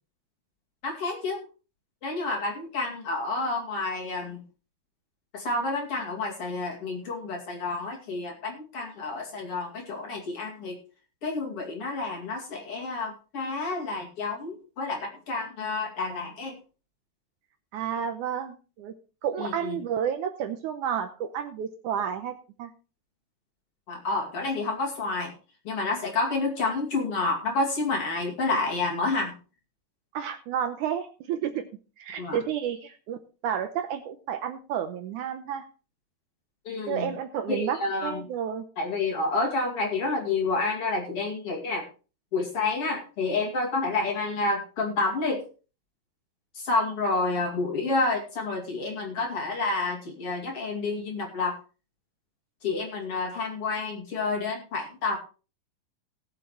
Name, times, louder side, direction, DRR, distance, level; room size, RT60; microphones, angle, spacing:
voice 1, 0.8-1.4 2.0-4.4 5.3-10.8 11.2-16.6 19.4-19.8 23.9-25.3 25.6-29.4 32.2-32.4 36.6-37.1 37.5-38.2 38.8-41.9 42.3-45.4 46.5-51.6 52.6-55.2, left 3 dB, 45° left, 0 dB, 3.0 m, -29 dB
voice 2, 17.7-18.9 19.2-22.7 30.1-31.7 32.0-35.7 36.9-38.7, right 8 dB, 75° right, 7 dB, 2.0 m, -31 dB
19.0 x 7.6 x 3.1 m, 0.34 s
omnidirectional pair, 4.1 m